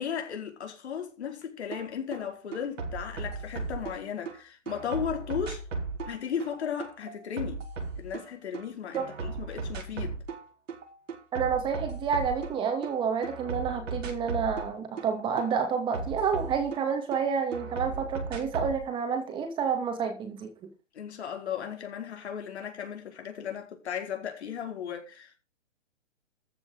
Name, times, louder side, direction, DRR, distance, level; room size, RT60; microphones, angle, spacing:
voice 1, 0.0-5.6 6.1-7.6 8.0-10.2 20.9-25.4, left 8 dB, 60° left, 4.8 m, -35 dB
sound 1, 1.7-1.8 2.1-4.3 4.7-8.6 8.9-10.4 10.7-12.9 13.2-17.2 17.5-18.8, right 4 dB, 85° right, 5.6 m, -36 dB
voice 2, 11.3-20.5, right 6 dB, 15° right, 2.4 m, -29 dB
14.5 x 6.9 x 6.5 m
hypercardioid pair, 160°, 37 cm